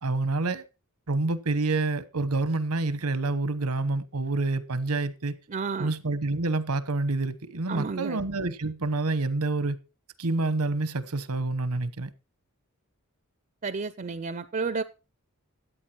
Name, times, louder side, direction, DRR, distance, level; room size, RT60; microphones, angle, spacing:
voice 1, 0.0-0.6 1.1-5.3 5.8-9.8 10.2-12.1, right 2 dB, 90° right, 1.1 m, -28 dB
voice 2, 5.5-5.9 7.7-8.2 13.6-14.8, right 4 dB, 35° right, 0.5 m, -31 dB
13.5 x 8.7 x 4.4 m
head